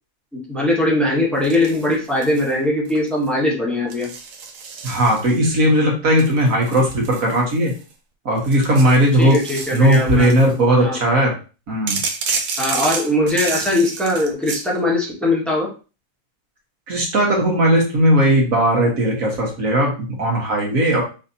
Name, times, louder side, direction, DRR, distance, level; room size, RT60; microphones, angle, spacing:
voice 1, 0.3-4.1 9.2-10.3 10.6-11.0 12.6-15.7, left 1 dB, ahead, -4 dB, 1.5 m, -20 dB
sound 1, 1.4-2.5 2.9-3.3 3.9-5.6 6.2-7.9 8.4-10.5 11.9-14.7, right 5 dB, 75° right, 1.3 m, -30 dB
voice 2, 4.8-7.7 8.3-9.4 9.7-11.3 11.7-12.0 16.9-21.0, right 1 dB, 60° right, -2 dB, 1.9 m, -17 dB
5.4 x 3.3 x 2.8 m, 0.34 s
omnidirectional pair, 1.6 m